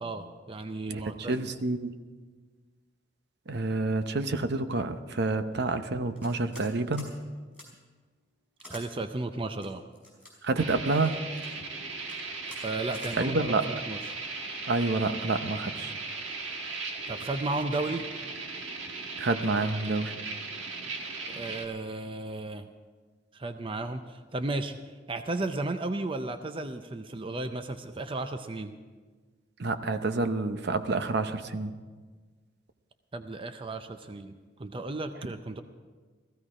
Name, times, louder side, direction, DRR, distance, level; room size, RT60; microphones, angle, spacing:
voice 1, 0.0-1.4 8.7-9.8 12.6-14.0 17.1-18.1 21.3-22.7 23.3-24.8 25.1-28.7 33.1-35.6, right 2 dB, 30° right, 8 dB, 0.6 m, -34 dB
voice 2, 1.3-2.0 3.5-7.1 10.4-11.2 13.2-13.6 14.7-15.9 19.2-20.1 29.6-31.7, right 3 dB, 60° right, 9 dB, 0.8 m, -28 dB
sound 1, 6.2-6.7 6.9-7.1 7.5-7.7 8.6-8.8 9.6-10.3 11.0-11.5 12.0-12.2 12.4-12.6 12.9-13.1, left 1 dB, 5° right, 5.2 m, -48 dB
sound 2, 10.6-21.6, right 3 dB, 80° right, 1.5 m, -37 dB
15.5 x 15.0 x 4.9 m, 1.4 s
head